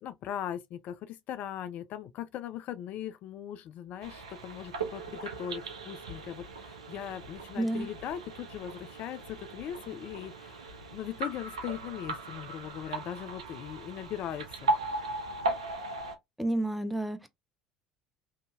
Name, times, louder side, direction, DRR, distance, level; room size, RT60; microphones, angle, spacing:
voice 1, 0.0-14.8, left 10 dB, 55° left, 0.3 m, -39 dB
sound 1, 4.0-16.2, right 2 dB, 85° right, 0.5 m, -37 dB
voice 2, 7.6-7.9 16.4-17.3, right 1 dB, ahead, 0.6 m, -30 dB
2.8 x 2.6 x 2.3 m
hypercardioid pair, 65°, 3 cm